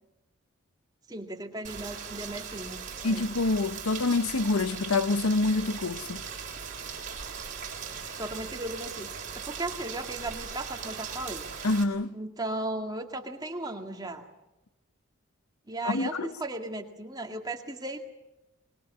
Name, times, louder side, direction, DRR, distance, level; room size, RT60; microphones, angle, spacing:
voice 1, 1.1-3.2 8.2-9.2 9.4-11.5 12.1-14.3 15.7-18.0, right 2 dB, 20° right, 2.1 m, -36 dB
Rain, 1.6-11.8, right 6 dB, 35° right, 3.6 m, -39 dB
voice 2, 3.0-6.2 11.6-12.1 15.8-16.3, left 3 dB, 90° left, 0.8 m, -26 dB
24.0 x 22.0 x 8.5 m
head